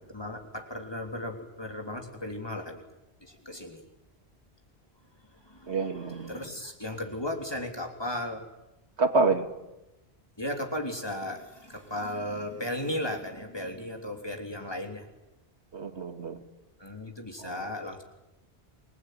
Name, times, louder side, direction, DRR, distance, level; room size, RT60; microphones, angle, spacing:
voice 1, 0.1-2.8 3.2-3.9 5.3-8.4 10.4-15.1 16.8-18.0, left 1 dB, 20° left, 3 dB, 3.4 m, -36 dB
voice 2, 5.7-6.4 9.0-9.5 15.7-16.4 17.4-17.6, right 3 dB, 80° right, 7 dB, 2.4 m, -27 dB
28.0 x 20.5 x 9.5 m, 0.97 s
omnidirectional pair, 1.1 m